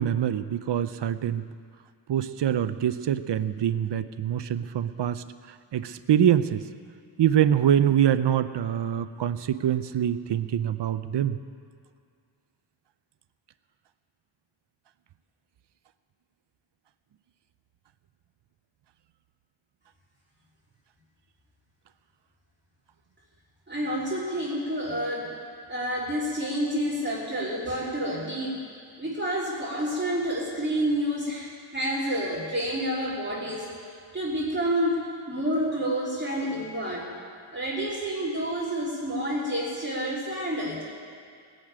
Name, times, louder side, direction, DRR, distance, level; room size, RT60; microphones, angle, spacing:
voice 1, 0.0-1.4 2.1-5.2 5.7-6.7 7.2-11.4, right 10 dB, 60° right, 12 dB, 0.7 m, -24 dB
voice 2, 23.7-25.4 25.7-28.6 29.0-33.7 34.1-35.0 35.3-37.1 37.5-40.8, equal, 20° right, -7 dB, 3.2 m, -29 dB
20.0 x 6.7 x 8.9 m, 2.3 s
wide cardioid pair, 125°, 48 cm